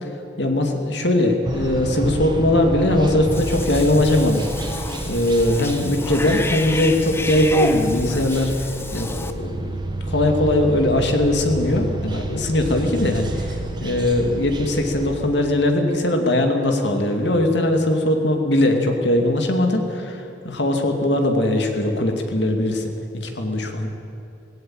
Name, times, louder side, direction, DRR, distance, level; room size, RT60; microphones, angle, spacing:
voice 1, 0.4-4.7 5.1-8.5 8.9-9.8 10.1-22.9 23.2-23.9, left 1 dB, 75° left, 4 dB, 2.5 m, -20 dB
sound 1, 1.4-15.2, right 1 dB, 25° right, 1.4 m, -30 dB
Cat / Bathtub (filling or washing), 3.3-9.3, left 2 dB, 15° left, 0.8 m, -31 dB
17.5 x 16.5 x 9.0 m, 3.0 s
head